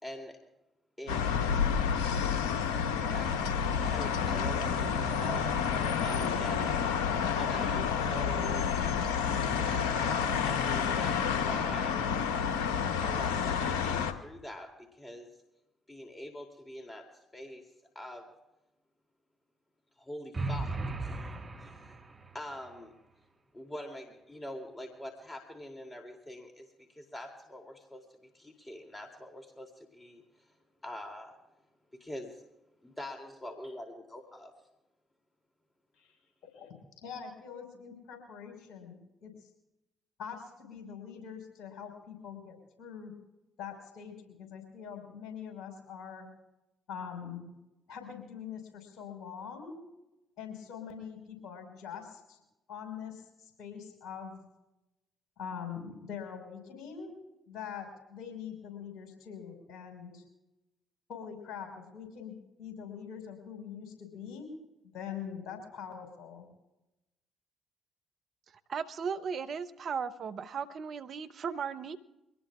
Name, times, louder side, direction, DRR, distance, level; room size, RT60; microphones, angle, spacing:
voice 1, 0.0-0.4 1.0-1.2 3.1-3.3 3.8-6.8 7.3-8.7 9.5-12.1 13.0-15.3 15.9-17.1 17.3-17.7 17.9-18.3 20.0-22.0 22.3-22.9 23.5-28.0 28.3-30.5 30.8-31.3 31.9-32.4 32.8-34.5, left 1 dB, 20° left, 3 dB, 2.9 m, -44 dB
sound 1, 1.1-14.1, left 7 dB, 80° left, 0.9 m, -29 dB
sound 2, 20.3-22.4, right 2 dB, 35° right, 1.8 m, -36 dB
voice 2, 37.0-39.3 40.2-43.1 43.6-46.3 46.9-47.5 47.9-49.8 50.4-52.4 52.7-54.4 55.4-57.2 57.5-60.2 61.1-64.5 64.9-66.5, left 7 dB, 65° left, 3 dB, 5.2 m, -43 dB
voice 3, 68.7-72.0, right 6 dB, 55° right, 10 dB, 0.9 m, -36 dB
24.0 x 19.0 x 2.5 m, 0.93 s
hypercardioid pair, 45°, 0 cm